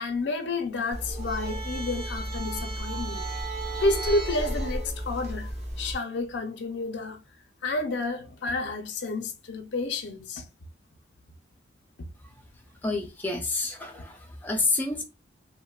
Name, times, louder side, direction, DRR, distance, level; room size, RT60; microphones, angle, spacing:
voice 1, 0.0-3.3 3.8-5.5 5.8-7.2 7.6-10.4, left 2 dB, 70° left, 0.5 m, -30 dB
sound 1, 0.9-6.0, right 1 dB, 35° right, 0.7 m, -33 dB
voice 2, 12.8-15.0, left 3 dB, 10° left, 0.5 m, -29 dB
3.0 x 2.1 x 2.2 m
head